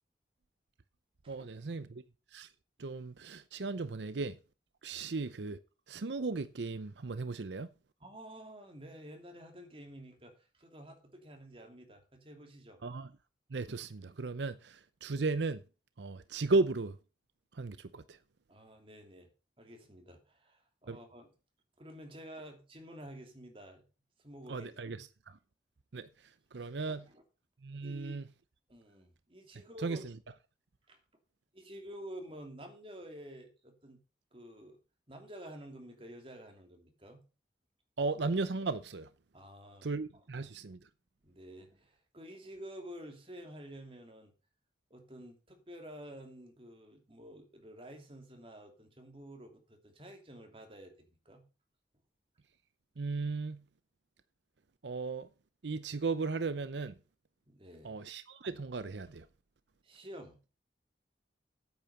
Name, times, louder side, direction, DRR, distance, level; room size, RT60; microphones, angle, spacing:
voice 1, 1.3-2.0 2.3-2.5 2.8-4.4 4.8-5.6 5.9-7.7 12.8-13.1 13.5-15.6 16.0-17.0 17.5-18.2 20.9-21.0 24.5-25.0 25.3-25.4 25.9-26.1 26.5-27.0 27.6-28.2 29.8-30.0 38.0-39.1 39.8-40.8 53.0-53.6 54.8-55.3 55.6-56.9 57.8-59.3, right 3 dB, 85° right, 0.7 m, -35 dB
voice 2, 8.0-12.8 18.5-19.3 19.6-21.3 21.8-23.8 24.2-24.7 26.5-27.2 27.8-28.2 28.7-30.0 30.9-31.0 31.5-34.0 34.3-34.8 35.1-37.2 39.3-40.2 41.2-44.3 44.9-51.4 57.5-58.0 59.8-60.4, equal, 30° right, 2.9 m, -50 dB
8.9 x 8.7 x 5.4 m
head